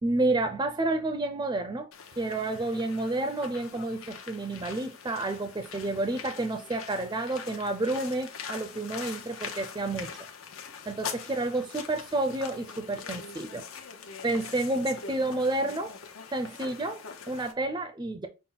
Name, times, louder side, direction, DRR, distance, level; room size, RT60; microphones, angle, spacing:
voice 1, 0.0-1.9 2.2-10.1 10.9-13.6 14.2-16.0 16.3-18.3, right 2 dB, 20° right, 0.4 m, -30 dB
sound 1, 1.9-17.5, left 6 dB, 80° left, 0.8 m, -43 dB
5.7 x 2.1 x 3.8 m
head